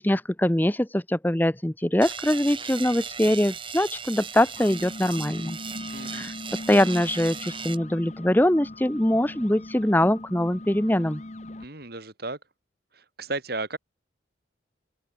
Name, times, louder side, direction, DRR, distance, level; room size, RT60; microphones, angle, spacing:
voice 1, 0.0-5.6 6.1-11.2, left 1 dB, 10° left, 0.8 m, -23 dB
sound 1, 2.0-7.8, right 6 dB, 25° right, 5.3 m, -37 dB
sound 2, 4.4-11.7, left 1 dB, 35° left, 1.1 m, -40 dB
voice 2, 5.9-6.3 11.6-12.4 12.9-13.8, right 2 dB, 55° right, 3.7 m, -34 dB
open air
head